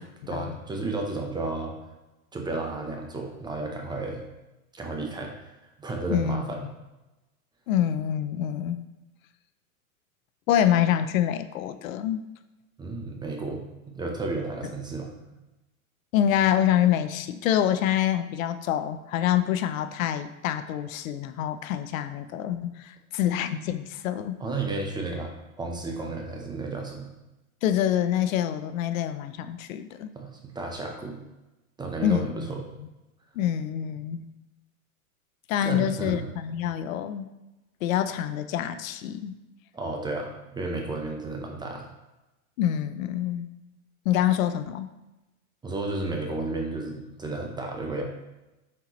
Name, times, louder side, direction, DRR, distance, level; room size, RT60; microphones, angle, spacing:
voice 1, 0.3-1.8 2.3-4.2 4.7-5.3 5.8-6.6 12.8-13.6 13.9-15.1 24.4-25.3 25.6-27.1 30.1-31.2 31.8-32.6 35.6-36.2 39.7-41.9 45.6-48.0, right 2 dB, 10° right, 1 dB, 0.6 m, -32 dB
voice 2, 6.1-6.7 7.7-8.8 10.5-12.2 16.1-24.4 27.6-30.1 32.0-32.5 33.4-34.3 35.5-37.3 37.8-39.3 42.6-43.5 44.1-44.9, left 10 dB, 65° left, 11 dB, 0.6 m, -26 dB
8.0 x 4.3 x 3.0 m, 1.0 s
hypercardioid pair, 125°, 43 cm